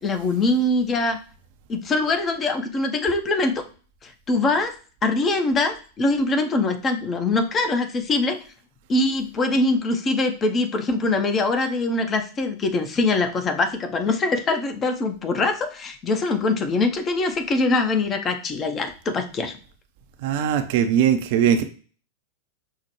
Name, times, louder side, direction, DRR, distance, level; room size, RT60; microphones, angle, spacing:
voice 1, 0.0-1.2 1.7-3.6 4.0-4.7 5.0-8.4 8.9-19.5, left 2 dB, 25° left, 6 dB, 0.5 m, -23 dB
voice 2, 20.2-21.6, right 8 dB, 50° right, 8 dB, 0.4 m, -20 dB
5.5 x 2.0 x 3.0 m, 0.39 s
figure-of-eight pair, 90°, 0 cm